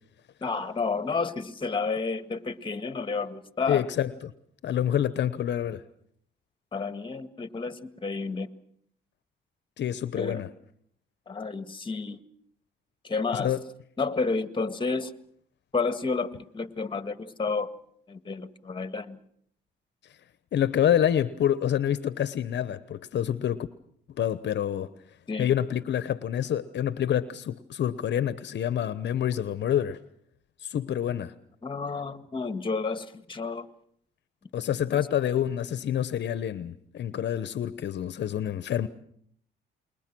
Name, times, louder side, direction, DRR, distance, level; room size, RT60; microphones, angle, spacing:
voice 1, 0.4-3.9 6.7-8.5 10.2-10.4 11.3-12.2 13.0-13.5 14.0-15.1 15.7-17.7 18.1-19.2 25.3-25.5 31.6-33.7 34.9-35.1, left 4 dB, 25° left, 1.8 m, -31 dB
voice 2, 3.7-4.3 4.6-5.8 9.8-10.5 13.3-13.6 20.5-23.7 24.2-24.9 25.4-30.0 30.6-31.3 34.5-38.9, left 10 dB, 60° left, 1.0 m, -27 dB
28.0 x 22.0 x 6.2 m
cardioid pair, 90°, 20 cm